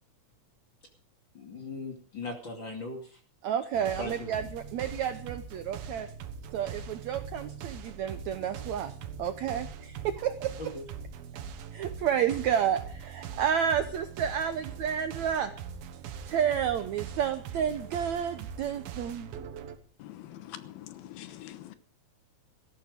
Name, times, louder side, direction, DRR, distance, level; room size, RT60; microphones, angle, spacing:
voice 1, 1.3-3.2 4.0-4.3 10.6-10.8, left 3 dB, 35° left, 3 dB, 2.7 m, -39 dB
voice 2, 3.4-6.1 6.5-8.9 9.2-10.5 11.7-15.5 16.3-19.3, right 8 dB, 70° right, 10 dB, 1.8 m, -30 dB
sound 1, 3.7-19.8, right 7 dB, 90° right, 3.2 m, -42 dB
voice 3, 20.0-21.8, left 13 dB, 85° left, 12 dB, 2.9 m, -44 dB
18.0 x 14.0 x 5.2 m, 0.43 s
omnidirectional pair, 4.2 m